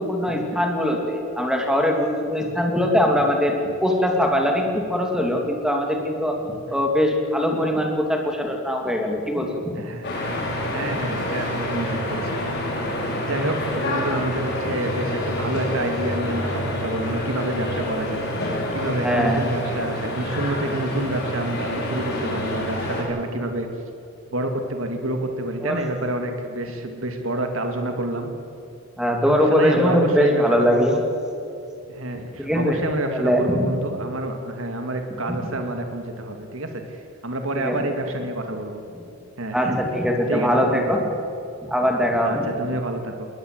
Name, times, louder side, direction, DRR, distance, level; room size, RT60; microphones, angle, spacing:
voice 1, 0.0-3.6 3.8-6.4 6.7-9.8 19.0-19.4 25.6-25.8 29.0-30.9 32.4-32.8 33.1-33.6 35.3-35.4 37.6-37.8 39.5-41.1 41.7-42.5, equal, 5° right, 2 dB, 2.7 m, -21 dB
voice 2, 9.8-10.1 10.7-12.4 13.2-18.3 18.7-23.7 24.3-28.3 29.3-31.0 31.9-38.8 39.4-39.8 40.3-40.9 42.2-43.3, right 1 dB, 70° right, 5 dB, 2.2 m, -28 dB
sound 1, 10.0-23.0, left 1 dB, 50° left, 6.3 m, -27 dB
21.0 x 20.0 x 7.9 m, 2.8 s
head